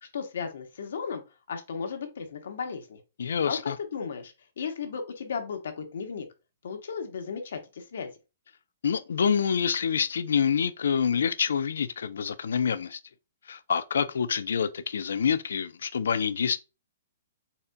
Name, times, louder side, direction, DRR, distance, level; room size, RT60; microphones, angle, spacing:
voice 1, 0.0-1.2 1.5-3.0 3.3-6.3 6.6-8.1, left 6 dB, 65° left, 0.9 m, -35 dB
voice 2, 3.2-3.8 8.8-13.0 13.5-16.6, left 7 dB, 85° left, 0.4 m, -27 dB
4.1 x 3.6 x 2.2 m
hypercardioid pair, 175°, 0 cm